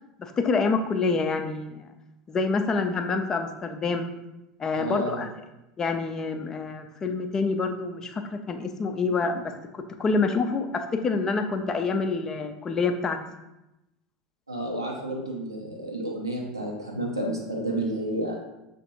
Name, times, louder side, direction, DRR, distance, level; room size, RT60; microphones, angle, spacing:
voice 1, 0.2-1.8 2.3-4.1 4.6-5.3 5.8-9.5 10.0-13.2, left 4 dB, 25° left, 6 dB, 0.4 m, -27 dB
voice 2, 4.7-5.2 14.5-18.4, right 1 dB, 85° right, -1 dB, 0.9 m, -31 dB
6.7 x 2.5 x 2.9 m, 0.94 s
figure-of-eight pair, 80°, 2 cm